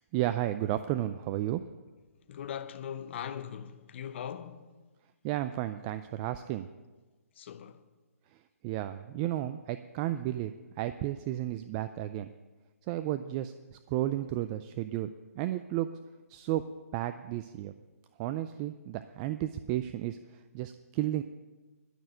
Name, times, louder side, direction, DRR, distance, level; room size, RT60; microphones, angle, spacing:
voice 1, 0.1-1.6 5.2-6.7 8.3-8.4 8.6-12.3 12.9-15.9 16.3-16.6 16.9-17.7 18.2-21.2, right 13 dB, 25° right, 0.4 m, -33 dB
voice 2, 2.3-4.7 7.4-7.8, left 9 dB, 45° left, 0.8 m, -40 dB
12.0 x 6.4 x 9.0 m
hypercardioid pair, 140°, 8 cm